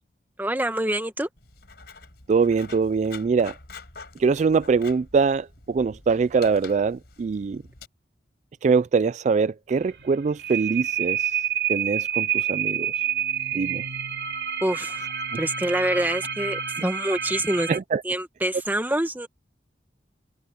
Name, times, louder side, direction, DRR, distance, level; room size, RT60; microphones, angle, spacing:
voice 1, 0.4-1.3 14.6-15.1 15.4-17.7 18.0-19.3, right 1 dB, 10° right, 1.5 m, -26 dB
Writing, 1.4-7.9, left 4 dB, 65° left, 5.0 m, -46 dB
voice 2, 2.3-3.5 4.2-7.6 8.6-11.3 11.7-12.9 13.5-13.8 17.7-18.0, right 5 dB, 40° right, 0.3 m, -23 dB
sound 1, 9.7-17.8, right 9 dB, 80° right, 2.5 m, -28 dB
open air
head